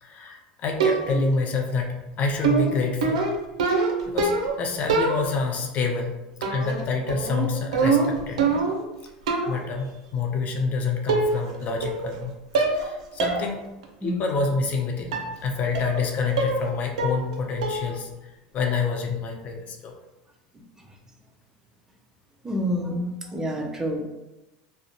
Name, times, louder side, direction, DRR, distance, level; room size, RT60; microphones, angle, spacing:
voice 1, 0.0-3.3 3.7-3.8 4.1-4.3 4.6-6.2 6.5-8.6 9.4-12.3 12.6-13.6 14.0-19.9, left 4 dB, 45° left, 3 dB, 0.4 m, -27 dB
sound 1, 0.8-1.4 2.4-4.6 4.9-5.6 6.4-6.8 7.1-8.9 9.3-9.6 10.6-10.7 11.1-11.6 11.8-12.2 12.5-12.9 13.2-13.4 13.8-13.9 15.1-15.3 15.7-16.1 16.4-16.7 17.0-17.3 17.6-18.0, right 4 dB, 80° right, 0.4 m, -24 dB
voice 2, 22.4-24.0, equal, 15° right, 1 dB, 0.5 m, -28 dB
2.4 x 2.1 x 2.8 m, 0.96 s
hypercardioid pair, 90°, 4 cm